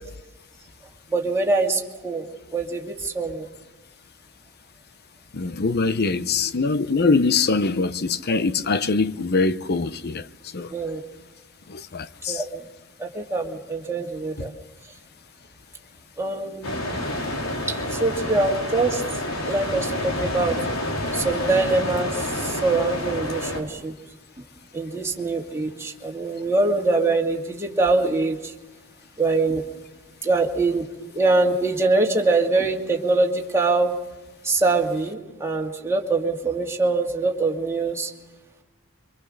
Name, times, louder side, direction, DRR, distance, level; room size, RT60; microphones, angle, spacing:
voice 1, 1.1-3.5 10.7-11.0 12.3-12.7 13.0-14.5 16.2-16.8 17.7-19.0 19.5-20.6 21.1-23.9 24.7-28.4 29.2-29.6 30.2-30.9 31.1-33.9 34.4-38.1, right 3 dB, 15° right, 2.5 m, -23 dB
voice 2, 5.3-10.2 10.5-10.7 11.7-12.4, left 4 dB, 50° left, 0.8 m, -23 dB
sound 1, 16.6-23.6, left 1 dB, 90° left, 3.9 m, -28 dB
26.5 x 24.5 x 6.6 m
head